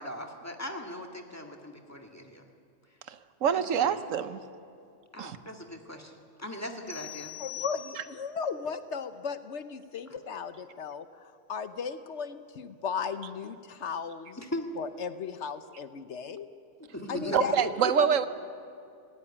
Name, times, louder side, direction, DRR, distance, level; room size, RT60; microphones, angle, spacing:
voice 1, 0.0-2.5 3.5-4.0 5.1-7.4 14.4-14.7 16.9-17.9, equal, 10° left, 3 dB, 1.9 m, -38 dB
voice 2, 3.1-4.4 5.2-5.4 17.3-18.3, right 8 dB, 85° right, 12 dB, 1.2 m, -26 dB
sound 1, 6.9-8.4, left 11 dB, 45° right, 2.0 m, -42 dB
voice 3, 7.4-14.4 14.8-16.5 17.1-17.6 18.0-18.3, left 6 dB, 65° left, 11 dB, 1.1 m, -36 dB
18.0 x 17.5 x 9.9 m, 2.5 s
omnidirectional pair, 1.3 m